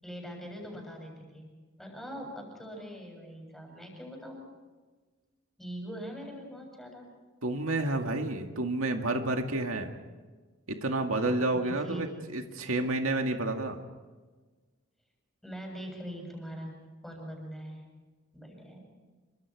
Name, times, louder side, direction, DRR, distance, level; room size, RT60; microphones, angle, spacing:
voice 1, 0.0-1.5 1.8-4.5 5.6-7.1 11.2-12.1 15.4-17.8 18.3-18.8, equal, ahead, 0 dB, 7.5 m, -42 dB
voice 2, 7.4-9.9 10.7-12.1 12.3-13.8, right 2 dB, 85° right, 4 dB, 2.1 m, -30 dB
28.0 x 25.0 x 4.9 m, 1.3 s
head